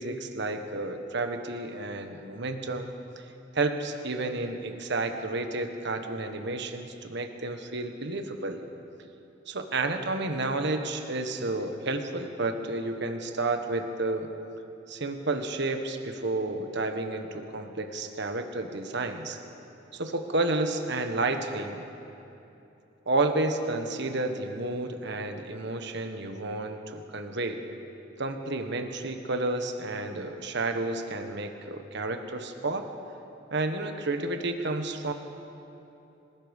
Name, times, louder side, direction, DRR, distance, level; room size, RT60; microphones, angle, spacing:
voice 1, 0.0-3.2 3.5-8.6 9.5-14.3 14.9-19.4 19.9-21.8 23.1-27.6 28.2-32.9 33.5-35.1, right 2 dB, 60° right, 6 dB, 1.5 m, -31 dB
27.0 x 18.5 x 5.4 m, 2.9 s
head